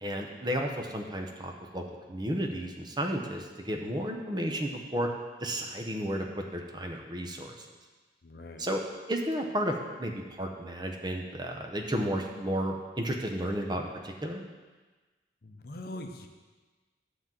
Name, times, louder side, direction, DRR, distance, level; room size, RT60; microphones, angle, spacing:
voice 1, 0.0-1.8 2.1-5.1 5.4-7.7 8.6-8.8 9.1-14.5, equal, 25° right, 2 dB, 0.8 m, -33 dB
voice 2, 8.2-8.7 15.4-16.3, left 1 dB, 55° left, 4 dB, 0.8 m, -42 dB
10.0 x 3.9 x 7.4 m, 1.3 s
head